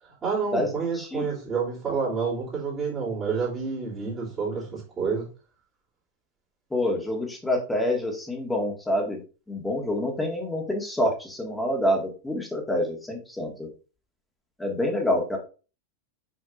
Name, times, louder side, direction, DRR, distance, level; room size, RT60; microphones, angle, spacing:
voice 1, 0.0-5.3, right 5 dB, 25° right, -7 dB, 3.0 m, -29 dB
voice 2, 6.7-9.2 9.5-13.7 14.6-15.4, left 1 dB, 5° left, 1 dB, 1.8 m, -27 dB
6.3 x 6.2 x 2.5 m, 0.35 s
figure-of-eight pair, 90°, 0 cm